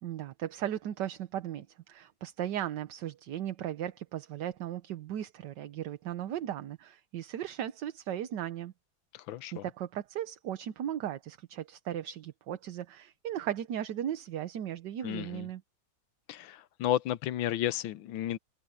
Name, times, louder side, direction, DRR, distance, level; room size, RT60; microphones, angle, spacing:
voice 1, 0.0-8.7 9.5-15.6, right 11 dB, 65° right, 1.4 m, -37 dB
voice 2, 9.1-9.6 15.0-15.5 16.3-18.4, left 12 dB, 75° left, 1.4 m, -33 dB
omnidirectional pair, 2.2 m